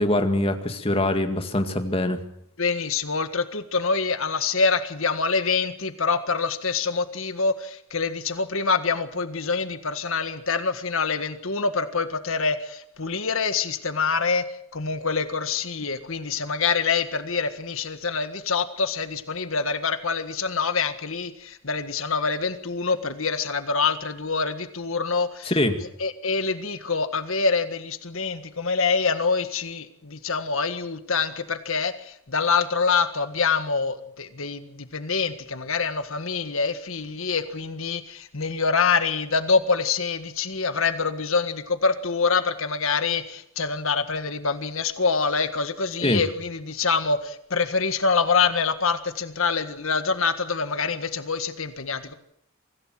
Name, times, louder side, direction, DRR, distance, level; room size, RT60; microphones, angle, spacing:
voice 1, 0.0-2.2 25.5-25.8 46.0-46.2, left 1 dB, 25° left, 6 dB, 2.1 m, -23 dB
voice 2, 2.6-25.5 26.0-52.1, left 5 dB, 65° left, 10 dB, 1.7 m, -25 dB
24.5 x 16.0 x 7.7 m, 0.71 s
head